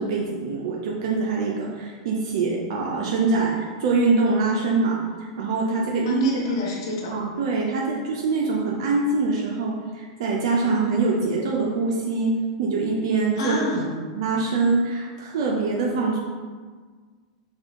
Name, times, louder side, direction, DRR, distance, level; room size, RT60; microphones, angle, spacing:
voice 1, 0.0-5.0 5.4-6.2 7.1-13.6 14.2-16.2, right 3 dB, 65° right, -2 dB, 0.5 m, -24 dB
voice 2, 6.1-7.1 13.4-13.9, left 2 dB, 70° left, -3 dB, 0.9 m, -27 dB
3.5 x 2.4 x 3.6 m, 1.5 s
hypercardioid pair, 110°, 3 cm